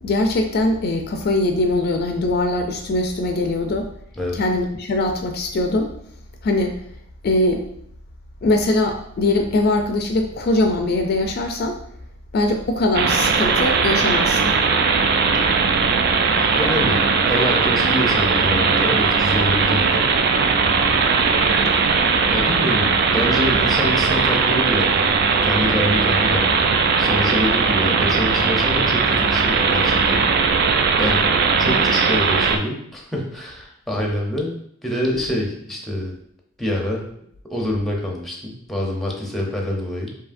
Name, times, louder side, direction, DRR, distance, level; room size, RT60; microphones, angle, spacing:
voice 1, 0.0-3.9 4.3-5.9 6.4-6.8 7.2-7.6 8.4-11.8 12.3-14.5, left 2 dB, 50° left, 4 dB, 0.4 m, -21 dB
sound 1, 12.9-32.6, right 5 dB, 50° right, 0.3 m, -18 dB
voice 2, 16.2-20.1 21.3-21.9 22.3-25.1 25.4-26.7 27.0-30.3 31.0-31.3 31.6-36.1 36.6-37.0 37.5-40.1, left 1 dB, ahead, -1 dB, 0.6 m, -26 dB
4.8 x 2.7 x 2.5 m, 0.69 s
head